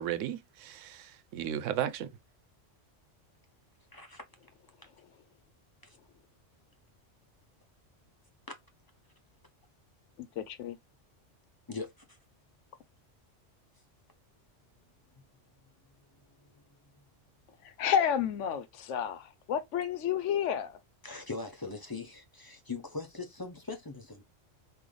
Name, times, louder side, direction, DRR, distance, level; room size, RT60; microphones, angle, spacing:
voice 1, 0.0-2.1, right 10 dB, 90° right, 0.9 m, -35 dB
voice 2, 3.9-4.2 4.8-4.9 5.8-6.0 11.7-12.2 16.5-16.6 21.0-24.2, left 4 dB, 25° left, 0.5 m, -41 dB
voice 3, 10.2-10.8 17.6-20.8, left 8 dB, 80° left, 1.0 m, -31 dB
3.8 x 2.6 x 3.1 m
omnidirectional pair, 1.3 m